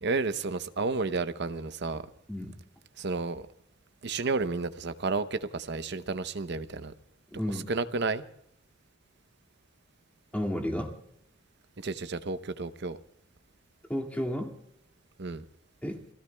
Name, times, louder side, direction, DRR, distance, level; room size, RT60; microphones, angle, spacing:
voice 1, 0.0-2.0 3.0-3.5 4.0-6.9 7.7-8.2 11.8-13.0 15.2-15.4, right 3 dB, 60° right, 0.8 m, -31 dB
voice 2, 7.3-7.7 10.3-10.9 13.9-14.5 15.8-16.0, equal, 10° left, 2.1 m, -32 dB
29.5 x 17.5 x 2.3 m
head